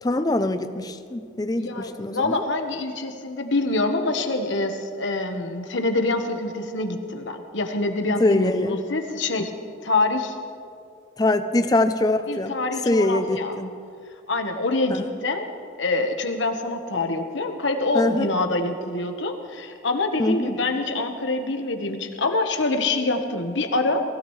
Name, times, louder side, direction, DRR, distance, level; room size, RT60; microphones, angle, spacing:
voice 1, 0.0-2.4 8.2-8.7 11.2-12.5 12.9-13.7 14.9-15.0 17.9-18.3 20.2-20.5, left 2 dB, 20° left, 10 dB, 0.5 m, -23 dB
voice 2, 1.6-9.5 9.8-10.4 12.3-13.6 14.3-15.5 15.8-24.0, left 2 dB, 80° left, 5 dB, 1.2 m, -25 dB
19.0 x 16.5 x 3.2 m, 2.4 s
head